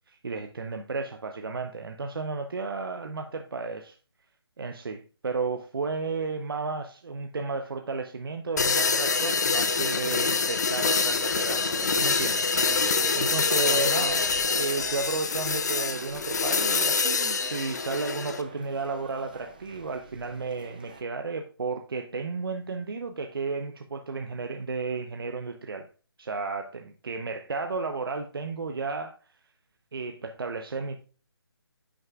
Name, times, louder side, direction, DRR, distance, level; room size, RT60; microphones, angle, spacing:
voice 1, 0.1-3.9 4.6-12.8 13.1-14.3 14.6-25.9 26.2-29.1 29.9-31.0, right 4 dB, 60° right, 4 dB, 0.8 m, -33 dB
sound 1, 8.6-18.4, left 4 dB, 40° left, 0.6 m, -26 dB
sound 2, 11.8-21.0, right 4 dB, 20° right, 0.5 m, -43 dB
11.0 x 6.4 x 2.4 m, 0.36 s
hypercardioid pair, 175°, 13 cm